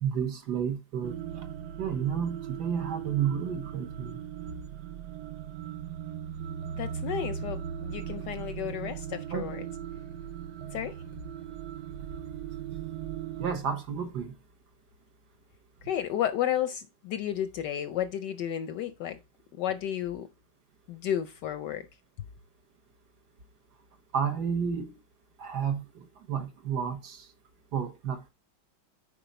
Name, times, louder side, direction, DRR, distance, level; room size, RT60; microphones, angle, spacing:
voice 1, 0.0-1.1 1.8-4.2 9.3-9.5 13.4-14.3 24.1-24.9 25.4-25.8 26.3-27.3 27.7-28.3, right 7 dB, 60° right, 1.4 m, -31 dB
sound 1, 1.0-13.6, right 9 dB, 75° right, 1.0 m, -38 dB
voice 2, 6.7-9.7 10.7-10.9 15.8-19.2 19.5-20.3 20.9-21.9, left 10 dB, 70° left, 1.0 m, -32 dB
7.7 x 5.0 x 4.1 m
omnidirectional pair, 2.2 m